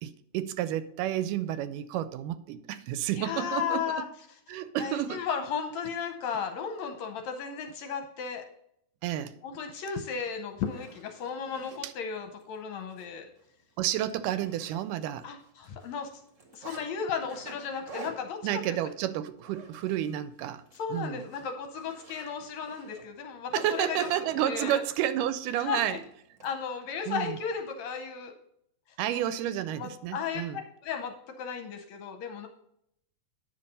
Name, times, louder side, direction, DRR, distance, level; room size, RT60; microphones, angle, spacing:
voice 1, 0.0-3.9 4.5-5.2 9.0-9.3 11.8-11.9 13.8-15.3 18.4-20.6 20.9-21.2 23.5-26.0 27.1-27.4 29.0-30.6, right 11 dB, 85° right, 14 dB, 2.1 m, -31 dB
voice 2, 3.2-4.1 4.5-8.4 9.4-13.3 15.2-16.1 16.5-18.6 20.7-24.1 24.5-24.8 25.6-26.0 26.4-28.3 29.1-29.2 29.7-32.5, left 6 dB, 75° left, 5 dB, 1.8 m, -35 dB
Zipper (clothing), 10.0-10.1 10.5-11.8 12.4-12.6 12.9-13.0 13.4-13.5 13.8-15.2 15.4-16.8 17.3-20.2 20.5-20.8 21.2-24.8 25.8-26.5, right 3 dB, 40° right, 1.1 m, -47 dB
8.8 x 5.8 x 5.3 m, 0.76 s
omnidirectional pair, 3.8 m